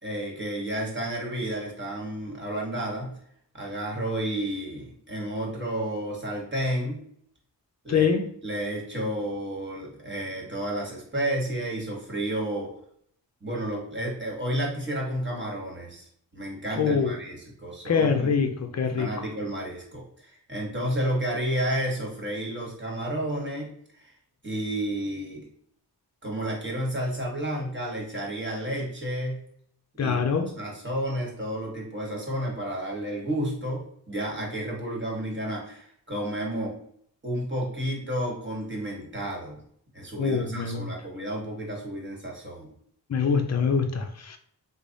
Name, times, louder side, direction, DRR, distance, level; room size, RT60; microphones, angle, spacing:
voice 1, 0.0-3.2 3.5-7.0 7.8-8.1 8.4-12.7 13.4-16.0 16.3-18.3 19.0-23.7 24.0-24.1 24.4-25.5 26.2-29.4 30.0-36.8 37.2-39.6 39.9-42.7, right 1 dB, 25° right, 1.5 m, -31 dB
voice 2, 7.9-8.3 16.8-17.2 17.8-19.1 30.0-30.5 40.2-40.9 43.1-44.4, left 6 dB, 40° left, 0.6 m, -24 dB
3.3 x 2.1 x 4.0 m
cardioid pair, 50°, 42 cm